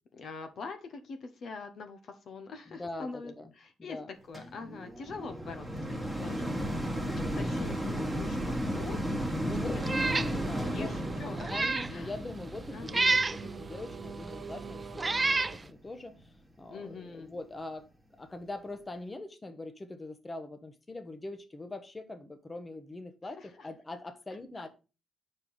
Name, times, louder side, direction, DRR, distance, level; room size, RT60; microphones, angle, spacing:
voice 1, 0.1-4.0 4.3-6.5 6.8-9.2 9.6-10.1 10.6-12.1 12.7-13.2 16.7-17.3 23.4-23.7 24.6-24.7, left 4 dB, 60° left, 7 dB, 0.8 m, -44 dB
voice 2, 2.7-3.5 3.8-4.1 9.4-10.9 11.5-16.3 16.6-17.9 18.2-24.7, left 2 dB, 20° left, 8 dB, 1.0 m, -42 dB
sound 1, 4.3-15.6 16.2-16.3, equal, 5° right, 1.2 m, -35 dB
Meow, 9.8-10.3 10.8-10.9 11.4-11.9 12.9-13.4 14.3-14.4 15.0-15.6, right 3 dB, 25° right, 0.4 m, -28 dB
Singing / Musical instrument, 9.9-15.6, right 4 dB, 45° right, 0.8 m, -45 dB
4.8 x 4.4 x 5.2 m, 0.33 s
cardioid pair, 90°, 0 cm